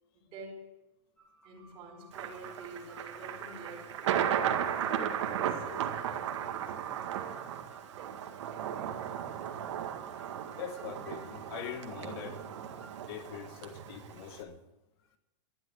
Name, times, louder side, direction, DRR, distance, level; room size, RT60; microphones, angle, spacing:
voice 1, 0.2-0.8 1.4-7.5 7.9-9.3, right 2 dB, 35° right, 4.8 m, -50 dB
sound 1, 1.2-12.9, right 3 dB, 10° left, 7.7 m, -57 dB
Thunder, 2.1-14.4, right 9 dB, 75° right, 2.0 m, -35 dB
voice 2, 10.6-12.4 13.1-14.6, left 8 dB, 55° left, 1.4 m, -42 dB
12.5 x 12.0 x 8.2 m
supercardioid pair, 140°, 15 cm